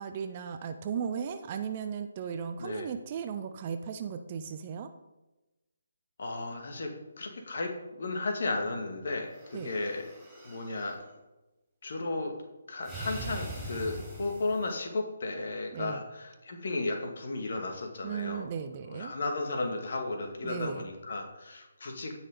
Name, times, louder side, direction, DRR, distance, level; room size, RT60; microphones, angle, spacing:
voice 1, 0.0-4.9 9.5-9.7 15.7-16.0 18.0-19.1 20.4-20.8, right 7 dB, 30° right, 8 dB, 0.7 m, -36 dB
voice 2, 6.2-6.9 7.2-7.7 8.0-10.0 10.4-11.0 11.8-12.3 12.7-18.5 18.9-22.1, left 2 dB, 50° left, 3 dB, 2.2 m, -34 dB
sound 1, 9.2-11.0 12.8-14.8, right 1 dB, 5° right, 4.0 m, -42 dB
16.5 x 6.2 x 4.0 m, 1.0 s
figure-of-eight pair, 145°, 0 cm